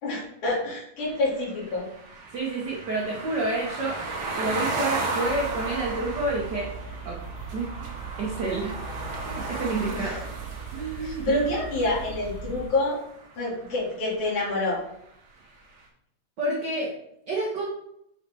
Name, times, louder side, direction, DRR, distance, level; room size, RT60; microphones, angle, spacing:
voice 1, 0.0-1.9 9.9-10.2 11.0-13.0 13.4-14.8, left 2 dB, 80° left, -6 dB, 3.8 m, -27 dB
sound 1, 1.0-13.0, right 3 dB, 60° right, 1.1 m, -35 dB
voice 2, 2.3-4.0 4.3-6.7 7.0-7.2 7.5-8.8 9.2-10.2 10.7-11.5 16.4-16.9 17.3-17.7, right 2 dB, 85° right, -2 dB, 0.9 m, -29 dB
sound 2, 5.2-12.7, right 5 dB, 45° left, 1.7 m, -39 dB
7.2 x 4.2 x 3.4 m, 0.76 s
omnidirectional pair, 3.4 m